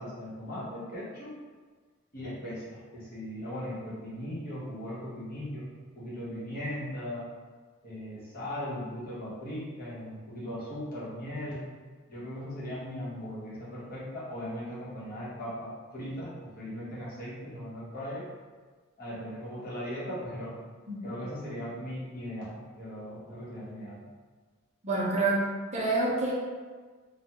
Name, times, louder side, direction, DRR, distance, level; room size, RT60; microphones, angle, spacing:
voice 1, 0.0-1.3 2.1-5.6 5.9-7.3 7.8-11.6 12.1-18.3 19.0-20.6 21.0-24.0, equal, 45° left, -9 dB, 0.9 m, -38 dB
voice 2, 24.8-25.4 25.7-26.3, right 2 dB, 30° right, -5 dB, 0.5 m, -27 dB
2.3 x 2.2 x 2.8 m, 1.4 s
head